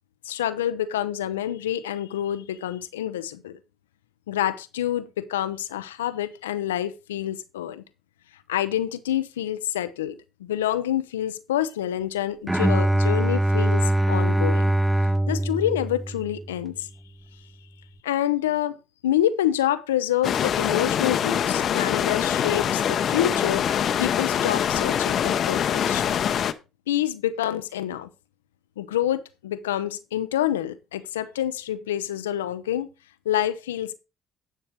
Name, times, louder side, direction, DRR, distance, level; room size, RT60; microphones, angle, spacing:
voice 1, 0.2-3.6 4.3-7.8 8.5-14.7 15.3-16.9 18.0-18.8 19.0-23.7 24.0-26.2 26.9-28.1 28.8-32.9 33.3-34.0, left 11 dB, 90° left, 0.5 m, -27 dB
Bowed string instrument, 12.5-16.6, right 1 dB, 5° right, 0.5 m, -22 dB
sound 1, 20.2-26.5, left 9 dB, 55° left, 0.7 m, -24 dB
11.0 x 6.5 x 4.6 m
hypercardioid pair, 55°, 0 cm